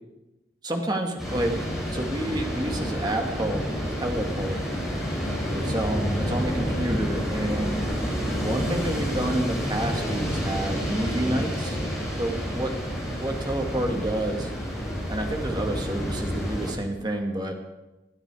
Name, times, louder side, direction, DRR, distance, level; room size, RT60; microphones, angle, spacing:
voice 1, 0.6-1.5 1.9-3.6 4.0-4.8 5.5-7.8 8.4-11.8 12.2-12.7 13.2-14.5 15.1-17.5, right 1 dB, 25° right, 3 dB, 2.0 m, -29 dB
sound 1, 1.2-16.7, equal, ahead, 5.8 m, -29 dB
22.0 x 13.0 x 4.9 m, 1.0 s
head